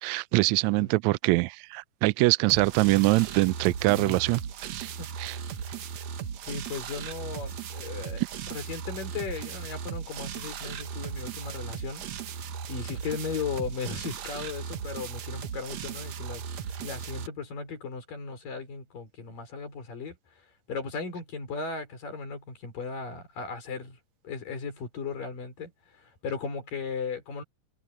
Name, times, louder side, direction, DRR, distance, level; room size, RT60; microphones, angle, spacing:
voice 1, 0.0-4.9 5.2-5.4, right 21 dB, 85° right, 1.6 m, -24 dB
sound 1, 2.5-17.3, right 7 dB, 60° right, 2.2 m, -37 dB
voice 2, 6.4-12.1 12.7-16.4 16.8-20.2 20.7-24.0 24.2-27.4, left 5 dB, 80° left, 6.7 m, -36 dB
omnidirectional pair, 3.8 m